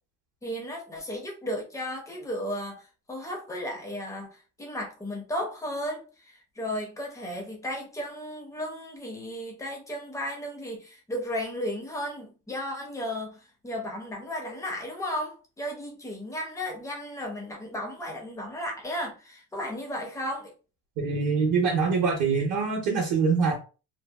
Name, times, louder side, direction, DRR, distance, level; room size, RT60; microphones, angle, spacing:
voice 1, 0.4-20.5, equal, 10° left, 0.4 m, -34 dB
voice 2, 21.0-23.6, right 5 dB, 55° right, 0.7 m, -24 dB
2.7 x 2.2 x 2.2 m
cardioid pair, 170°, 43 cm